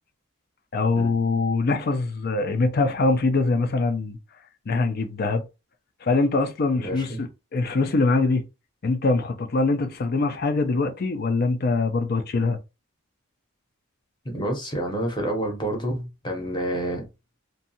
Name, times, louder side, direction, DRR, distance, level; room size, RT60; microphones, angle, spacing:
voice 1, 0.7-4.2 4.7-5.4 6.0-8.4 8.8-12.6, left 3 dB, 45° left, 0.4 m, -23 dB
voice 2, 6.8-7.2 14.2-17.1, right 1 dB, 20° left, 0.8 m, -28 dB
2.6 x 2.3 x 2.7 m
head